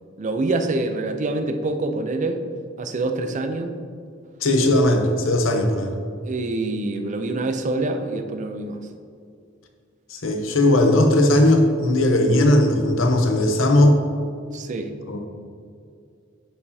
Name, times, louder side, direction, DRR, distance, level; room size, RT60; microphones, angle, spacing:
voice 1, 0.2-2.4 2.8-3.8 6.3-8.8 14.5-14.9, right 2 dB, 40° right, 7 dB, 0.4 m, -26 dB
voice 2, 4.4-5.9 10.1-14.0 15.1-15.2, left 1 dB, 80° left, 5 dB, 0.7 m, -18 dB
10.0 x 4.9 x 2.8 m, 2.3 s
head